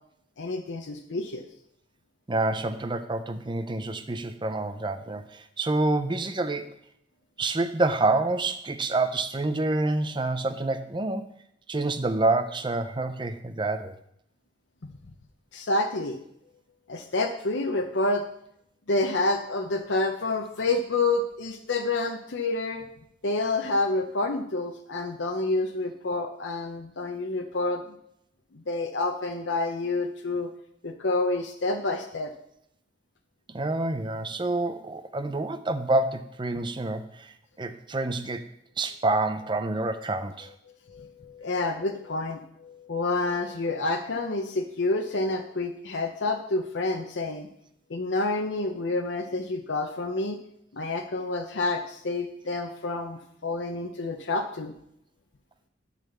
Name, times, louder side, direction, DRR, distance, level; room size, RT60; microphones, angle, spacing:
voice 1, 0.4-1.5 14.8-14.9 15.5-16.2 16.9-18.3 18.9-22.8 23.2-27.9 28.5-30.5 30.8-32.3 40.9-47.5 47.9-50.4 50.7-54.7, left 2 dB, 90° left, 4 dB, 0.8 m, -28 dB
voice 2, 2.3-6.8 7.4-11.2 11.7-14.0 33.5-38.5 38.8-40.5, right 2 dB, 25° right, 9 dB, 0.7 m, -27 dB
11.0 x 4.1 x 6.8 m, 0.75 s
head